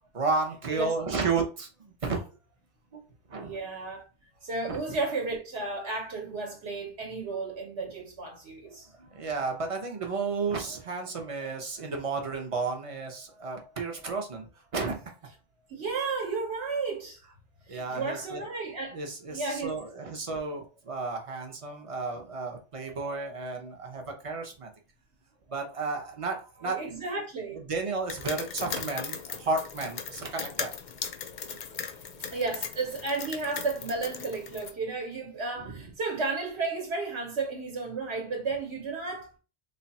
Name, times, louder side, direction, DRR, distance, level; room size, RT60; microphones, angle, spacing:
voice 1, 0.1-2.2 2.9-3.0 3.3-3.6 4.7-4.8 8.9-15.1 17.7-18.4 18.9-24.7 25.5-26.8 27.5-30.7 31.5-31.6 35.6-35.9, right 4 dB, 35° right, 0.7 m, -32 dB
voice 2, 3.4-4.0 4.4-8.9 15.7-17.2 17.7-19.0 19.3-19.7 26.6-27.6 32.3-39.4, right 3 dB, 70° right, 1.1 m, -33 dB
sound 1, 28.1-34.7, left 7 dB, 55° left, 0.5 m, -38 dB
3.3 x 2.3 x 4.0 m
omnidirectional pair, 1.2 m